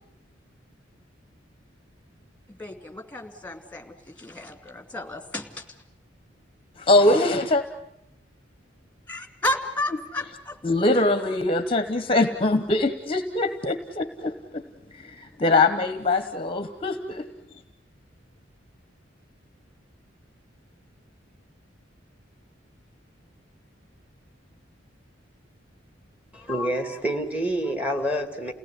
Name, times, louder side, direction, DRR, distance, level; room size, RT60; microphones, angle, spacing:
voice 1, 2.5-5.6 9.1-10.6, left 1 dB, 10° left, 6 dB, 2.5 m, -32 dB
voice 2, 6.8-7.6 10.6-14.6 14.9-17.2, left 2 dB, 30° left, 9 dB, 1.1 m, -22 dB
voice 3, 26.3-28.5, equal, 5° right, 6 dB, 2.4 m, -27 dB
29.5 x 18.0 x 9.9 m, 0.86 s
head